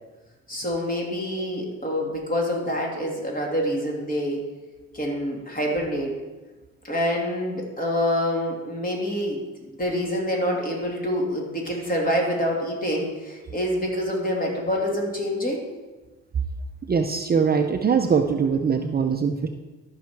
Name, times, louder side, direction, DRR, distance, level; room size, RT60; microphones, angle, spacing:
voice 1, 0.5-4.4 4.9-6.1 6.8-15.6, equal, 30° left, -2 dB, 3.0 m, -26 dB
voice 2, 16.9-19.5, right 6 dB, 30° right, 5 dB, 0.7 m, -22 dB
13.0 x 5.8 x 4.6 m, 1.2 s
cardioid pair, 90°, 30 cm